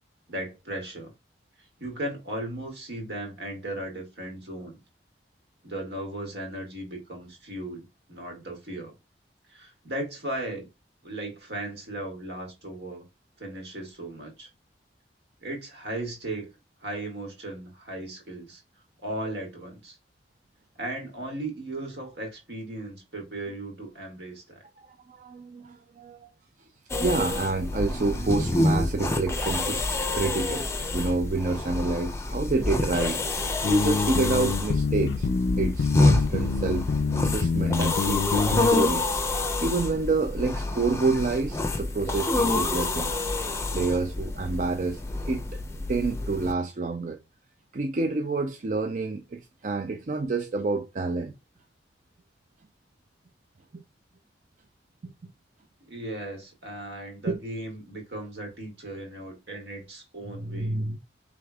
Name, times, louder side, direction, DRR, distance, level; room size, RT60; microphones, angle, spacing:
voice 1, 0.3-1.1 1.8-4.8 5.6-8.9 9.5-10.7 11.0-13.1 13.4-14.5 15.4-16.5 16.8-18.6 19.0-20.0 20.8-24.6 55.8-60.7, right 1 dB, 70° right, 2.1 m, -36 dB
voice 2, 24.8-26.3 27.0-30.7 30.9-33.2 33.6-35.3 35.6-36.9 37.2-43.1 43.7-45.0 45.3-45.6 45.9-47.2 47.7-51.3 53.7-53.8 55.0-55.3 57.3-57.4 60.2-61.0, right 3 dB, 45° right, 0.4 m, -28 dB
sound 1, 26.9-46.5, left 2 dB, 15° left, 0.6 m, -28 dB
sound 2, 33.6-38.7, left 4 dB, 75° left, 0.4 m, -27 dB
5.0 x 3.4 x 2.3 m
head